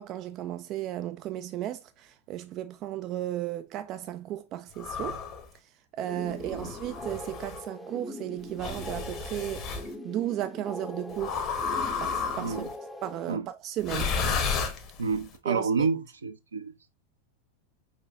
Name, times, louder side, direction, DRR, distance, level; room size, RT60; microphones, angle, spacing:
voice 1, 0.0-5.2 5.9-11.4 12.0-12.7 13.0-14.2 15.4-15.9, right 13 dB, 35° right, 0.3 m, -35 dB
sound 1, 4.8-5.4 6.4-7.6 8.6-9.9 11.2-12.7 13.8-15.2, left 5 dB, 35° left, 0.9 m, -32 dB
sound 2, 6.0-13.4, left 1 dB, 5° left, 0.6 m, -42 dB
voice 2, 12.4-12.7 13.3-13.4 15.0-16.7, right 5 dB, 75° right, 0.6 m, -29 dB
4.7 x 4.2 x 2.4 m
figure-of-eight pair, 90°, 0 cm